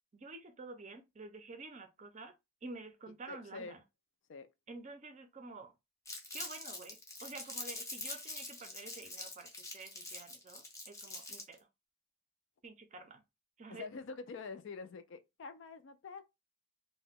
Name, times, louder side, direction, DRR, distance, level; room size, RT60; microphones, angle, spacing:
voice 1, 0.1-2.3 2.6-3.8 4.7-5.7 6.3-11.6 12.6-13.2 13.6-13.9, right 3 dB, 35° right, 0.5 m, -49 dB
voice 2, 3.3-3.8 4.3-4.5 13.7-16.2, left 4 dB, 60° left, 0.4 m, -46 dB
Crumpling crinkling, 6.1-11.6, left 2 dB, 15° left, 0.5 m, -44 dB
2.8 x 2.1 x 3.4 m
head